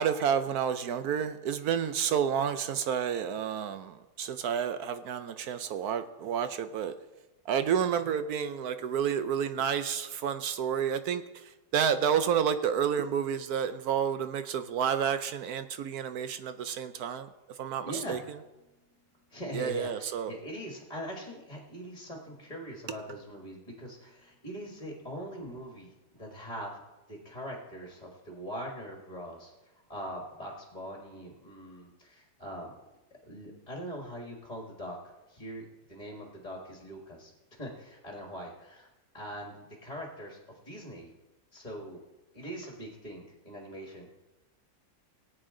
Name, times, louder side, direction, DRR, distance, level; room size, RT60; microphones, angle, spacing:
voice 1, 0.0-6.9 7.5-11.2 11.7-17.3 17.6-18.2 19.5-20.3, right 8 dB, 70° right, 11 dB, 0.9 m, -30 dB
voice 2, 17.8-18.3 19.3-26.8 27.1-32.7 33.2-38.9 39.1-39.6 39.8-41.1 41.5-42.0 42.3-44.1, equal, 25° left, 0 dB, 1.6 m, -42 dB
17.5 x 8.9 x 3.8 m, 1.1 s
omnidirectional pair, 2.0 m